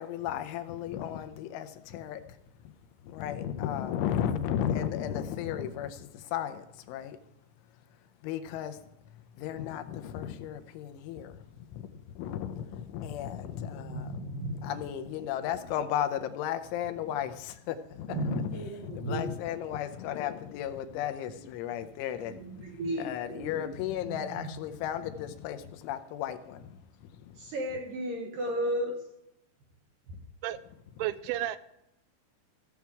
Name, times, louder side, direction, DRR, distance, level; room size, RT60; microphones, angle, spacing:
voice 1, 0.0-2.7 3.0-7.2 8.2-27.5 31.0-31.1, left 10 dB, 80° left, 9 dB, 3.1 m, -35 dB
voice 2, 13.8-14.7 18.1-19.3 22.3-23.7 24.1-24.3 27.4-29.0 30.1-30.2, right 1 dB, 65° right, 1 dB, 2.2 m, -34 dB
voice 3, 31.0-31.6, right 13 dB, 85° right, 14 dB, 2.9 m, -31 dB
16.0 x 7.2 x 4.6 m, 0.86 s
omnidirectional pair, 5.6 m